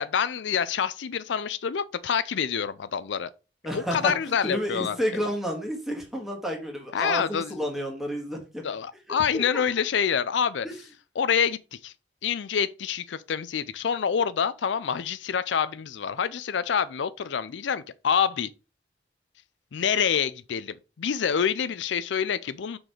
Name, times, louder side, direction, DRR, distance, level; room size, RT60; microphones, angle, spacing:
voice 1, 0.0-3.3 3.7-5.0 6.9-7.6 8.6-10.7 11.2-11.9 12.2-18.5 19.7-22.8, left 7 dB, 80° left, 0.4 m, -27 dB
voice 2, 3.6-8.6 9.3-9.4 10.6-10.7, equal, ahead, 1.7 m, -31 dB
6.3 x 4.6 x 5.0 m
head